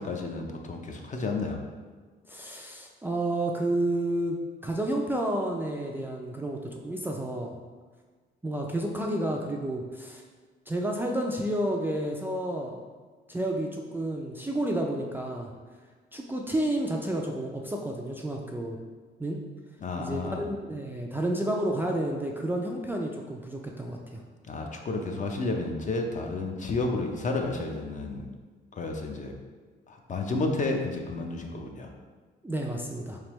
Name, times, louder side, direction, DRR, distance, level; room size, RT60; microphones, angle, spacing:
voice 1, 0.0-1.6 19.8-20.4 24.5-28.2 28.8-29.3 29.9-31.9, left 3 dB, 40° left, 2 dB, 0.5 m, -31 dB
voice 2, 2.3-7.5 8.4-10.2 10.7-12.8 13.3-15.5 16.1-18.8 19.2-19.4 20.0-24.2 32.4-33.2, right 1 dB, 10° right, -1 dB, 0.3 m, -30 dB
3.6 x 3.3 x 3.0 m, 1.5 s
cardioid pair, 90°, 20 cm